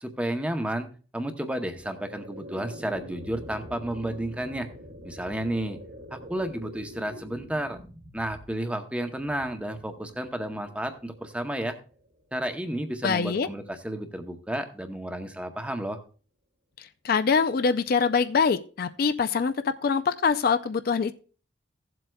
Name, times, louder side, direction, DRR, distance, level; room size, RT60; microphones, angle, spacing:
voice 1, 0.0-0.9 1.1-4.7 5.0-5.8 6.1-7.8 8.1-11.8 12.3-16.0, right 1 dB, 5° right, 6 dB, 0.7 m, -32 dB
sound 1, 1.4-12.6, equal, 70° right, 2.9 m, -46 dB
voice 2, 13.0-13.5 16.8-21.1, left 5 dB, 50° left, 12 dB, 0.4 m, -24 dB
16.0 x 7.7 x 2.3 m, 0.39 s
head